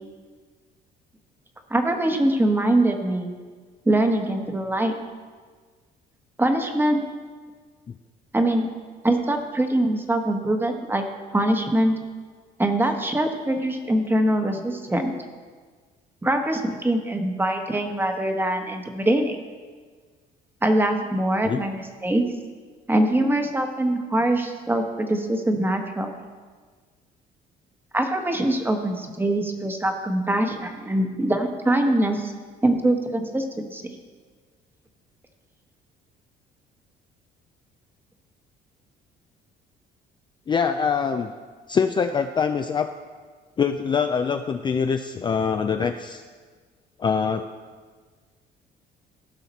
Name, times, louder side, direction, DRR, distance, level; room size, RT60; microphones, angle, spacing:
voice 1, 1.7-3.3 3.9-4.9 6.4-7.0 8.3-8.7 9.0-11.0 11.3-11.9 12.6-15.1 16.2-19.4 20.6-22.2 22.9-26.1 27.9-32.3 32.6-34.0, right 1 dB, 10° right, 5 dB, 1.1 m, -23 dB
voice 2, 40.5-41.3 41.7-42.9 43.6-46.2 47.0-47.5, left 6 dB, 25° left, 7 dB, 0.4 m, -24 dB
16.0 x 5.7 x 4.2 m, 1.5 s
cardioid pair, 110°, 17 cm